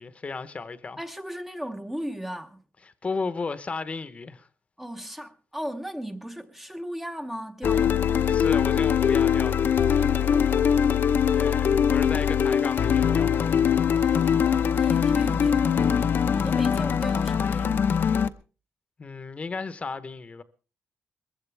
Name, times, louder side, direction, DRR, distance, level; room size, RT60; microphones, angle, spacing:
voice 1, 0.0-1.0 2.8-4.5 8.2-9.8 11.3-13.5 19.0-20.4, left 4 dB, 25° left, 1.0 m, -34 dB
voice 2, 1.0-2.6 4.8-8.0 10.2-10.8 13.9-17.9, equal, 5° right, 0.8 m, -37 dB
sound 1, 7.6-18.3, left 8 dB, 50° left, 0.8 m, -22 dB
21.0 x 15.5 x 3.4 m
cardioid pair, 135°, 5 cm